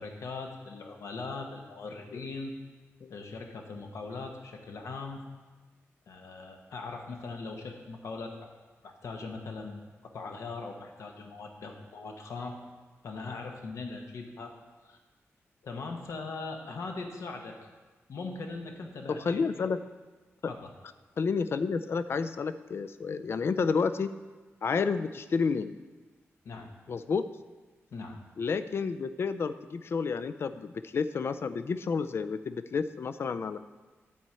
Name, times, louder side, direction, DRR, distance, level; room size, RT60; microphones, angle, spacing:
voice 1, 0.0-2.5 3.1-5.2 6.1-8.4 8.8-12.6 13.0-14.5 14.8-15.0 15.6-17.5 18.1-19.4 20.5-20.7 26.4-26.7 27.9-28.2, left 3 dB, 80° left, 3 dB, 1.0 m, -40 dB
voice 2, 19.1-19.8 21.2-24.1 24.6-25.7 26.9-27.3 28.4-33.6, left 5 dB, 55° left, 12 dB, 0.4 m, -30 dB
9.3 x 4.3 x 7.5 m, 1.3 s
wide cardioid pair, 135°, 5 cm